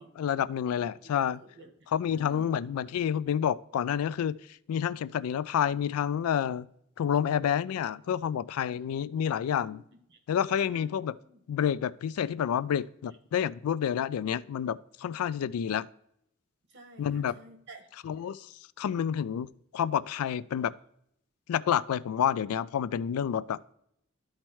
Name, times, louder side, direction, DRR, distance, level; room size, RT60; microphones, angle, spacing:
voice 1, 0.0-1.4 1.9-4.4 4.7-6.7 7.0-9.8 10.3-11.1 11.5-15.9 17.0-17.3 18.0-18.5 18.8-20.7 21.5-23.6, left 9 dB, 85° left, 18 dB, 0.3 m, -29 dB
voice 2, 0.8-1.1 1.4-2.5 8.6-9.1 9.6-10.2 10.7-10.9 11.2-11.4 16.7-17.9, equal, 55° right, 3 dB, 1.4 m, -52 dB
12.5 x 4.4 x 3.0 m, 0.72 s
head